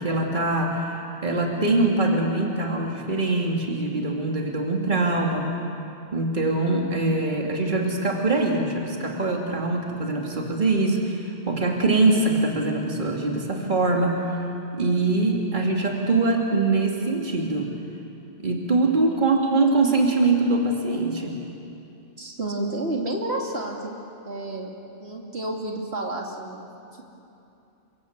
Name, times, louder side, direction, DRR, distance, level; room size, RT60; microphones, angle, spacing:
voice 1, 0.0-5.5 6.1-14.2 14.7-17.7 18.4-21.4, right 2 dB, 45° right, 0 dB, 2.7 m, -23 dB
voice 2, 22.2-26.7 26.9-27.0, right 2 dB, 60° right, 0 dB, 2.9 m, -31 dB
29.0 x 25.0 x 8.1 m, 2.7 s
omnidirectional pair, 1.2 m